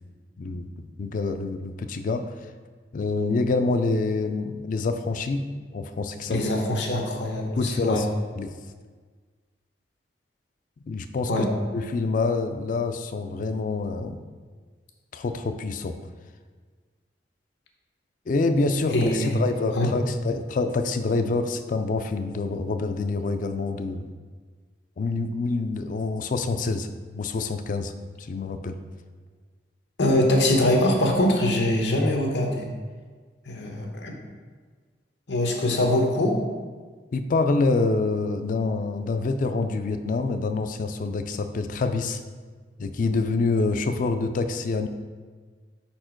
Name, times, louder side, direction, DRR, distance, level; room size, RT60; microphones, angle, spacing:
voice 1, 0.4-2.2 2.9-5.4 5.7-6.4 7.6-8.1 8.4-8.5 10.8-11.4 11.7-14.2 15.1-16.0 18.3-24.0 25.0-26.9 27.1-27.9 28.2-28.8 37.1-42.2 42.8-44.9, left 3 dB, 50° left, 8 dB, 0.3 m, -26 dB
voice 2, 6.3-8.0 11.3-11.5 18.9-19.4 19.8-19.9 30.0-32.7 33.5-34.2 35.3-36.4, left 1 dB, 90° left, 1 dB, 1.0 m, -23 dB
5.1 x 4.4 x 4.5 m, 1.5 s
head